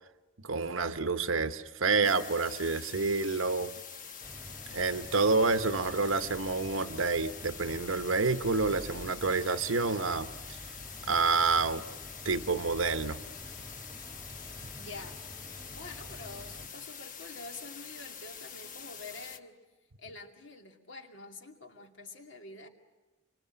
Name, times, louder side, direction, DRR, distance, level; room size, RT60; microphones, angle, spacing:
voice 1, 0.4-3.7 4.7-10.3 11.0-11.8 12.2-13.2, right 4 dB, 85° right, 9 dB, 1.1 m, -28 dB
sound 1, 2.0-19.4, left 7 dB, 40° left, 1.1 m, -45 dB
sound 2, 4.2-16.7, equal, 5° left, 1.9 m, -49 dB
voice 2, 14.8-15.2 15.7-19.6 20.0-22.7, left 3 dB, 65° left, 4 dB, 2.5 m, -47 dB
26.5 x 24.5 x 8.9 m, 1.1 s
head